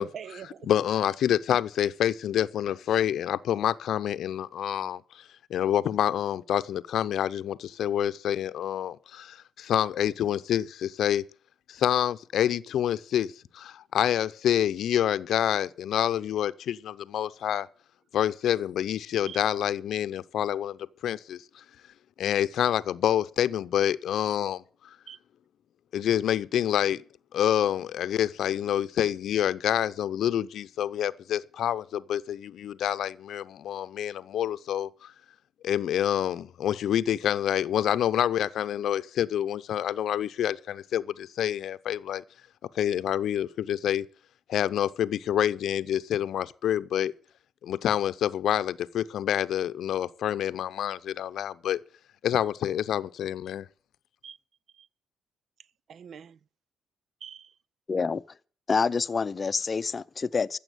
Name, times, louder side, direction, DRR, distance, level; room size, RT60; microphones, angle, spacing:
voice 1, 0.0-0.7 1.3-1.4 19.3-19.4 25.1-25.2 54.2-54.4 54.7-54.9 55.9-56.4 57.2-57.5, right 8 dB, 60° right, 0.5 m, -43 dB
voice 2, 0.7-11.2 11.7-17.7 18.1-21.6 22.2-24.6 25.9-27.0 27.3-35.1 35.6-42.2 42.7-44.1 44.5-47.1 47.6-51.8 52.2-53.7, left 10 dB, 70° left, 0.7 m, -27 dB
voice 3, 57.9-58.2 58.7-60.6, left 5 dB, 35° left, 0.6 m, -27 dB
14.5 x 7.1 x 8.1 m
cardioid pair, 90°, 0 cm